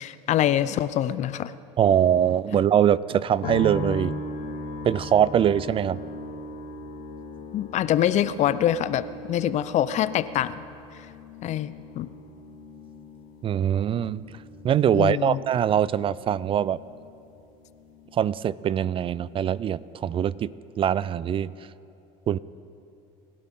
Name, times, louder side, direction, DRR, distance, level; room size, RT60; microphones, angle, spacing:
voice 1, 0.0-1.5 7.5-10.6 11.4-12.1 14.9-15.4, left 11 dB, 50° left, 15 dB, 0.6 m, -25 dB
voice 2, 1.8-4.1 4.8-6.0 13.4-14.2 14.6-16.8 18.1-21.5 22.3-22.4, right 9 dB, 35° right, 20 dB, 0.4 m, -23 dB
sound 1, 3.4-18.7 18.9-19.8, left 2 dB, 65° left, 2.1 m, -39 dB
29.5 x 12.0 x 3.7 m, 2.8 s
supercardioid pair, 90°, 16 cm